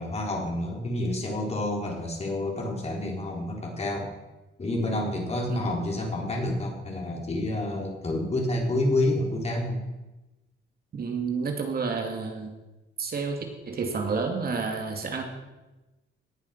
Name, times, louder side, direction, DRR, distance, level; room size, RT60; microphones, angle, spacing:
voice 1, 0.0-4.1 4.6-9.8, left 1 dB, 30° left, 1 dB, 3.8 m, -29 dB
voice 2, 10.9-12.6 13.0-15.2, right 5 dB, 50° right, 3 dB, 2.5 m, -30 dB
18.0 x 7.3 x 5.9 m, 1.0 s
cardioid pair, 90°, 20 cm